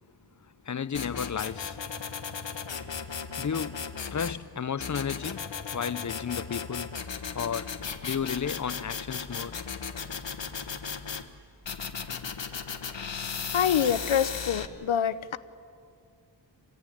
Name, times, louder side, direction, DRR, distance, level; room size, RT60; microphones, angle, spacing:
voice 1, 0.4-1.9 3.4-6.9 7.3-7.7 8.0-9.6 12.0-12.2, left 7 dB, 40° left, 0.6 m, -33 dB
sound 1, 0.9-4.4 4.8-11.2 11.7-14.7, left 6 dB, 65° left, 1.4 m, -36 dB
voice 2, 13.5-15.4, left 8 dB, 90° left, 0.8 m, -26 dB
25.0 x 16.5 x 9.9 m
wide cardioid pair, 70°, 47 cm